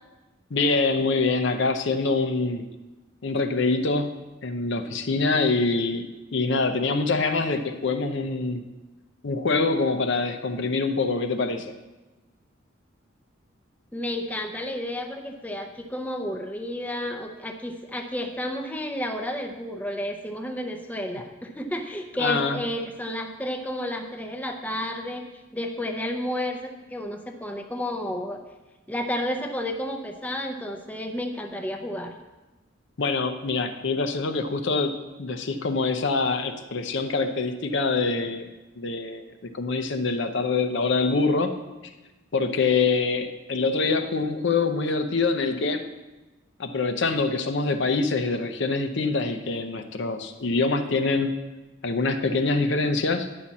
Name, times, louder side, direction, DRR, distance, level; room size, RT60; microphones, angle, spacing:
voice 1, 0.5-2.7 3.2-4.1 4.4-6.1 6.3-8.6 9.2-11.7 22.2-22.6 33.0-34.9 35.2-38.5 38.7-39.3 39.5-41.5 42.3-45.8 46.6-51.3 51.8-53.3, left 3 dB, 60° left, 7 dB, 0.7 m, -25 dB
voice 2, 13.9-25.2 25.5-28.4 28.9-32.1, left 1 dB, 10° left, 3 dB, 0.6 m, -31 dB
10.0 x 4.2 x 7.3 m, 1.1 s
head